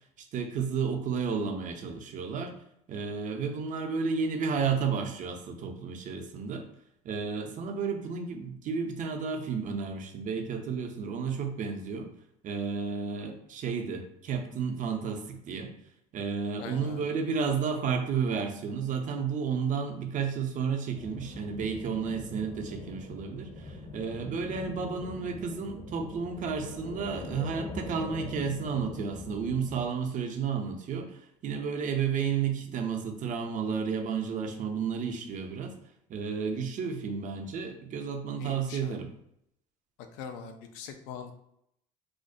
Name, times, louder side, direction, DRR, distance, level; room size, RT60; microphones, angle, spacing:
voice 1, 0.2-2.5 2.9-6.6 7.0-12.1 12.4-15.7 16.1-35.8 36.1-39.1, right 6 dB, 45° right, 4 dB, 0.5 m, -32 dB
voice 2, 16.6-17.0 38.4-39.0 40.2-41.3, left 6 dB, 80° left, 6 dB, 0.4 m, -42 dB
sound 1, 21.0-29.9, left 2 dB, 35° left, 0.6 m, -42 dB
2.5 x 2.0 x 2.5 m, 0.75 s
supercardioid pair, 85°, 18 cm